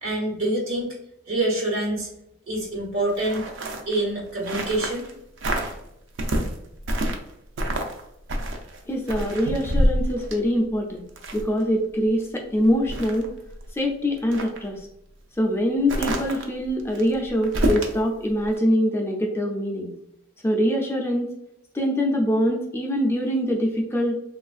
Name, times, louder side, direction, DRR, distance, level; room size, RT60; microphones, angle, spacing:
voice 1, 0.0-0.9 1.3-2.1 2.5-3.5 3.9-5.1, right 1 dB, 80° right, -2 dB, 1.2 m, -26 dB
sound 1, 3.1-5.1 5.4-5.8 6.2-7.3 7.6-8.0 8.3-11.6 12.1-12.2 12.6-13.7 14.1-14.6 15.9-18.0 18.4-18.6, right 1 dB, 60° right, 0.5 m, -27 dB
voice 2, 8.9-11.0 11.3-13.3 13.7-14.9 15.4-19.9 20.4-21.3 21.7-24.1, equal, 10° left, 0 dB, 0.3 m, -24 dB
3.2 x 2.4 x 2.3 m, 0.81 s
head